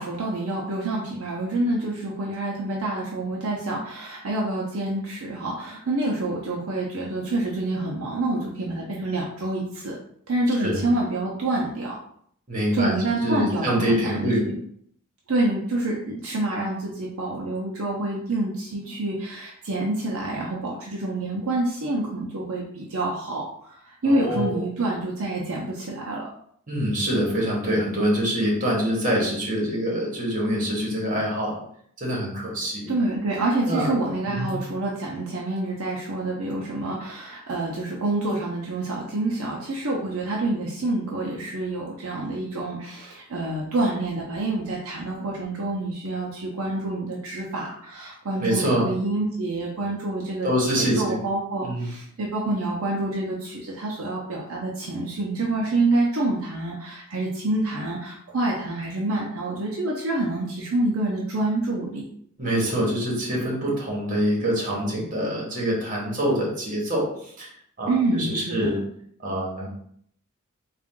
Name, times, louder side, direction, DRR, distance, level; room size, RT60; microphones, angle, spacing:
voice 1, 0.0-10.0 10.3-12.0 12.7-14.3 15.3-26.3 32.9-62.1 67.9-68.7, right 2 dB, 65° right, -3 dB, 0.6 m, -27 dB
voice 2, 12.5-13.0 13.2-14.5 24.0-24.6 26.7-31.6 32.0-32.9 33.7-33.9 34.3-34.6 48.4-48.9 50.4-51.2 51.6-51.9 62.4-67.5 67.8-68.8 69.2-69.7, equal, 35° right, -3 dB, 1.4 m, -25 dB
3.6 x 2.4 x 3.7 m, 0.65 s
head